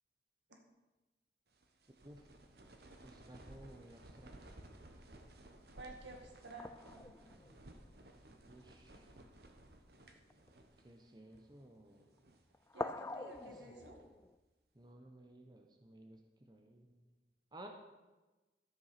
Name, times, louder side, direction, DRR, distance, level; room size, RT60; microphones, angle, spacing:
sound 1, 1.5-11.0 11.3-11.4 12.0-12.5 13.1-14.2, right 1 dB, 60° right, 1.1 m, -58 dB
voice 1, 3.0-4.6 8.4-9.1 10.8-12.2 13.5-13.7 14.7-17.0 17.5-17.7, right 1 dB, 25° right, 4 dB, 0.8 m, -57 dB
sound 2, 3.4-4.5 6.6-8.9 9.7-9.9 10.2-10.9 11.8-12.2 12.5-14.4, left 2 dB, 15° left, 0.3 m, -47 dB
voice 2, 5.8-7.2 12.7-14.0, right 2 dB, 80° right, 2 dB, 2.0 m, -52 dB
13.0 x 7.6 x 5.9 m, 1.2 s
head